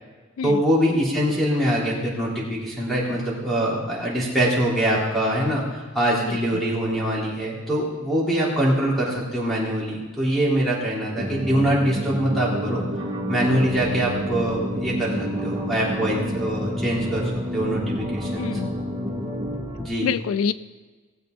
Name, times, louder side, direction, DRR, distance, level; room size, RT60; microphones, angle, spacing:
voice 1, 0.4-12.8 13.3-18.5 19.8-20.1, right 1 dB, ahead, -5 dB, 3.5 m, -24 dB
voice 2, 6.2-6.6 18.4-18.7 20.0-20.5, left 6 dB, 80° left, 16 dB, 0.3 m, -26 dB
sound 1, 11.2-19.6, equal, 25° right, 2.0 m, -29 dB
sound 2, 13.5-19.9, equal, 20° left, 4.3 m, -41 dB
19.0 x 7.9 x 4.0 m, 1.4 s
head